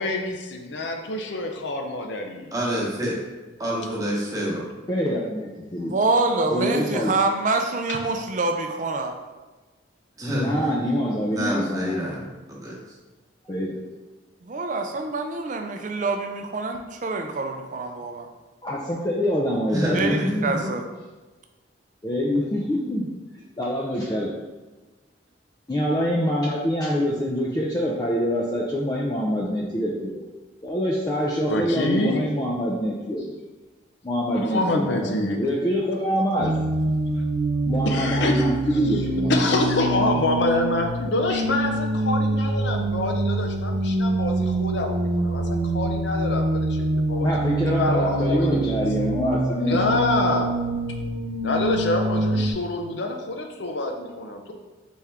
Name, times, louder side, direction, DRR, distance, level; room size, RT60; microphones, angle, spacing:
voice 1, 0.0-2.5 7.9-8.0 31.5-32.3 34.3-35.4 37.1-37.2 37.9-38.4 39.3-47.3 47.7-48.7 49.7-50.5 51.4-54.5, left 2 dB, 65° left, 3 dB, 0.6 m, -26 dB
voice 2, 2.5-3.2 3.6-4.6 10.2-10.8 11.3-12.8 19.7-20.7, equal, 20° right, -4 dB, 0.9 m, -28 dB
voice 3, 4.9-5.9 6.5-7.1 10.3-12.0 13.4-13.8 18.6-20.7 22.0-23.1 23.6-24.3 25.7-30.2 30.6-33.3 34.0-36.5 37.7-39.6 41.3-41.4 47.2-49.8, equal, 20° left, -4 dB, 0.4 m, -25 dB
voice 4, 5.8-9.1 14.4-18.3 19.9-20.8, right 3 dB, 40° right, 4 dB, 0.4 m, -26 dB
sound 1, 36.4-52.5, right 2 dB, 90° right, 0.5 m, -25 dB
4.2 x 3.6 x 3.5 m, 1.2 s
head